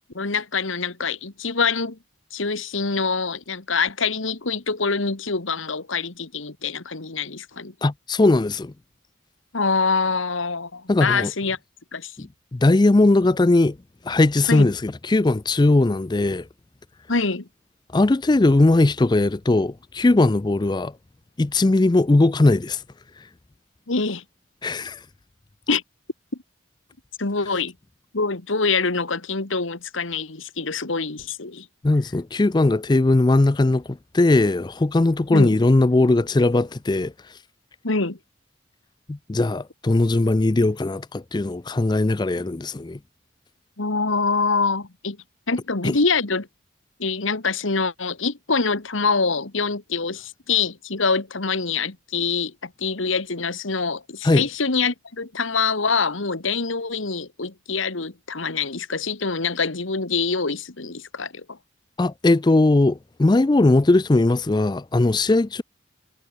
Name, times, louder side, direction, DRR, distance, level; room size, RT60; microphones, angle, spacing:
voice 1, 0.1-2.0 2.3-7.7 9.5-11.6 11.9-12.3 14.5-14.7 17.1-17.5 23.9-24.2 25.7-25.8 27.2-27.7 28.1-31.7 35.3-35.6 37.8-38.2 43.8-45.2 45.5-46.5 47.0-61.6, left 4 dB, 80° left, 1.8 m, -25 dB
voice 2, 7.8-8.7 10.9-11.3 12.2-13.8 14.1-16.5 17.9-20.9 21.4-22.8 24.6-25.0 31.8-37.1 39.1-43.0 45.8-45.9 54.2-54.4 62.0-65.6, left 2 dB, 20° left, 0.4 m, -19 dB
head